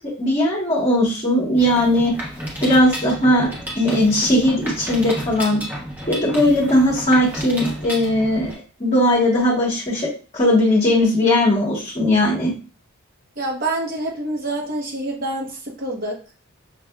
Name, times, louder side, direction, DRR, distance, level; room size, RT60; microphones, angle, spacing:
voice 1, 0.2-2.1 2.6-3.5 3.8-5.6 6.1-8.5 8.8-12.5, left 1 dB, 30° left, -6 dB, 1.2 m, -18 dB
Mechanisms, 1.6-8.5, equal, 10° right, 0.9 m, -32 dB
voice 2, 13.4-16.2, right 2 dB, 45° right, 0 dB, 1.0 m, -26 dB
6.0 x 2.5 x 2.2 m, 0.35 s
head